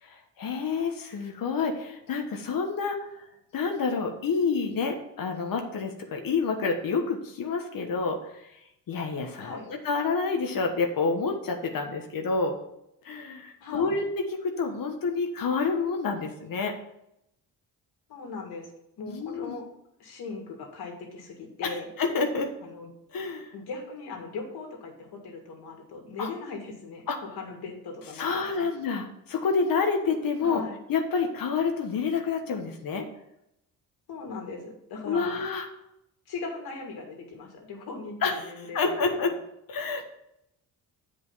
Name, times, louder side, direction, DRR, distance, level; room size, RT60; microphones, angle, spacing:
voice 1, 0.0-3.2 3.5-8.6 8.9-12.6 13.0-16.7 19.1-19.5 21.6-22.5 23.1-23.5 26.2-26.3 27.1-27.2 28.1-30.6 30.9-33.0 35.1-35.7 38.2-39.3 39.7-40.0, left 4 dB, 65° left, 3 dB, 1.3 m, -28 dB
voice 2, 13.6-14.0 18.1-18.7 19.0-19.7 20.0-21.9 22.6-22.9 23.5-27.1 27.3-28.7 30.4-30.8 34.1-35.4 36.3-39.3, left 4 dB, 80° left, 1 dB, 2.5 m, -39 dB
8.1 x 5.2 x 5.6 m, 0.80 s
cardioid pair, 80°, 38 cm